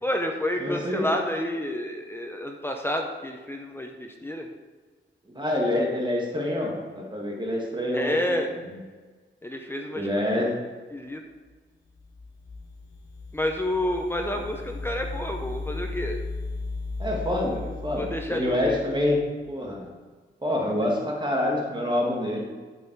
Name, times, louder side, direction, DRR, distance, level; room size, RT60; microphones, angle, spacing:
voice 1, 0.0-4.5 7.9-8.5 9.4-10.2 10.9-11.2 13.3-16.2 18.0-18.8, left 1 dB, 10° left, 3 dB, 0.7 m, -29 dB
voice 2, 0.6-1.1 5.4-8.4 10.0-10.5 17.0-19.2 19.5-19.9 20.4-22.5, left 1 dB, 20° right, -1 dB, 1.7 m, -26 dB
sound 1, 12.0-19.5, left 3 dB, 60° left, 2.9 m, -36 dB
11.5 x 5.5 x 4.6 m, 1.4 s
wide cardioid pair, 120°, 21 cm